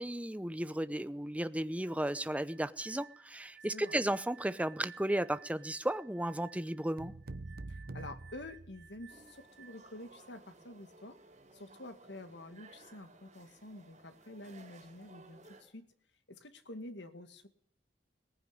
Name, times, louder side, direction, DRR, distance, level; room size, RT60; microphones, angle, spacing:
voice 1, 0.0-7.1, right 1 dB, 5° right, 13 dB, 0.7 m, -34 dB
sound 1, 1.8-10.0, right 7 dB, 80° right, 4.2 m, -58 dB
sound 2, 7.0-9.3, right 2 dB, 55° right, 0.8 m, -46 dB
voice 2, 7.7-11.2 11.5-15.9 16.3-17.5, left 1 dB, 70° left, 8 dB, 2.1 m, -49 dB
sound 3, 9.1-15.6, right 3 dB, 40° right, 6.0 m, -58 dB
18.5 x 15.0 x 9.8 m, 0.66 s
head